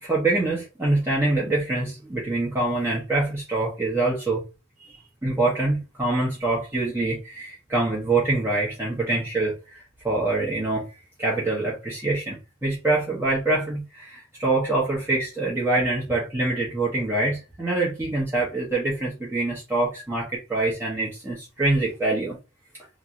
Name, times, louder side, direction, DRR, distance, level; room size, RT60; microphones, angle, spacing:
voice 1, 0.0-4.4 4.8-4.9 5.2-10.9 11.2-22.4, right 2 dB, 10° right, 0.7 m, -25 dB
2.9 x 2.6 x 2.5 m
head